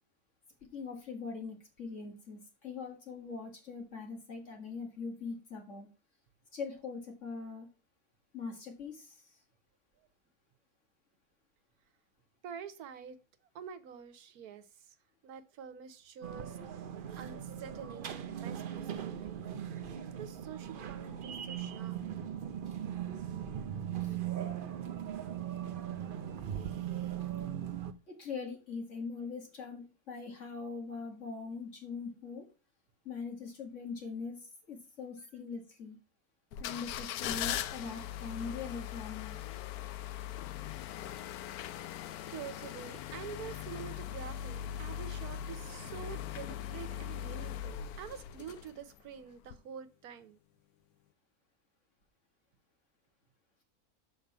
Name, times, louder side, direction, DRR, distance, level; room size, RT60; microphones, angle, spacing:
voice 1, 0.7-5.9 6.5-7.7 8.3-9.1 24.0-24.2 28.1-32.4 33.0-36.0 36.6-39.4, left 5 dB, 55° left, 2.4 m, -42 dB
voice 2, 12.4-13.2 13.5-15.0 15.2-16.9 17.2-19.5 19.9-22.0 25.6-25.8 35.2-35.3 42.3-50.4, right 8 dB, 85° right, 1.4 m, -47 dB
sound 1, 16.2-27.9, right 10 dB, 50° right, 0.6 m, -39 dB
sound 2, 36.5-49.0 49.4-49.6, left 10 dB, 85° left, 1.1 m, -40 dB
6.7 x 4.5 x 6.8 m
omnidirectional pair, 1.5 m